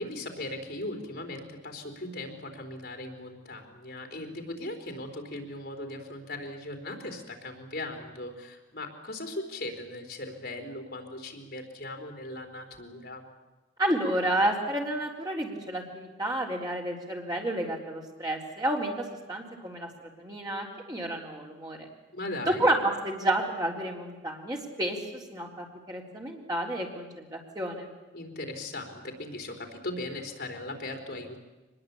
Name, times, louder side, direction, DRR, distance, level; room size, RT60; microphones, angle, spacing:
voice 1, 0.0-13.2 22.1-22.7 28.1-31.4, left 1 dB, 55° left, 4 dB, 4.1 m, -38 dB
voice 2, 13.8-19.9 20.2-21.9 22.6-27.9, right 1 dB, 20° right, -1 dB, 3.8 m, -30 dB
24.0 x 21.0 x 8.6 m, 1.1 s
head